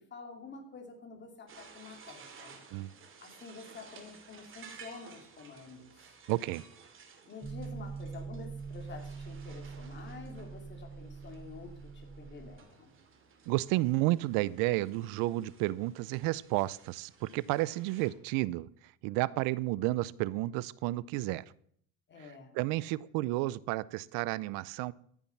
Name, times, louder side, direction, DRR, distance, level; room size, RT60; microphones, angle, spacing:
voice 1, 0.0-2.6 3.2-6.2 7.3-12.9 22.1-22.6, left 4 dB, 35° left, 3 dB, 3.0 m, -49 dB
sound 1, 1.5-18.1, right 5 dB, 40° right, 2.4 m, -56 dB
voice 2, 6.3-6.6 13.5-18.7 19.0-21.4 22.6-24.9, right 18 dB, 80° right, 21 dB, 0.6 m, -31 dB
sound 2, 7.4-12.6, right 5 dB, 5° right, 0.4 m, -43 dB
14.5 x 7.3 x 5.9 m, 0.64 s
cardioid pair, 125°, 33 cm